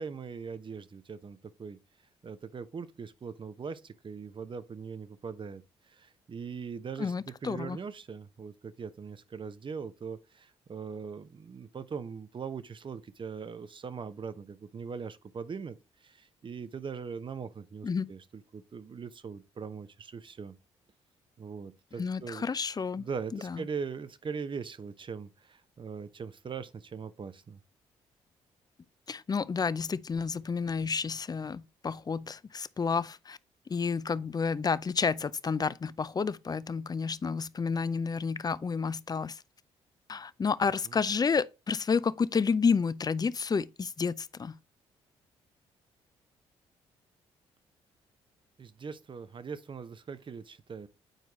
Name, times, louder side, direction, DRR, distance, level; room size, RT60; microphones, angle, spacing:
voice 1, 0.0-1.8 2.2-20.5 21.4-22.5 23.0-27.6 40.9-41.0 48.6-50.9, right 6 dB, 40° right, 0.8 m, -41 dB
voice 2, 7.0-7.8 17.8-18.1 22.0-23.1 23.3-23.6 29.1-33.4 33.7-39.4 40.1-44.6, left 5 dB, 30° left, 0.5 m, -30 dB
9.1 x 4.6 x 3.0 m
hypercardioid pair, 50°, 13 cm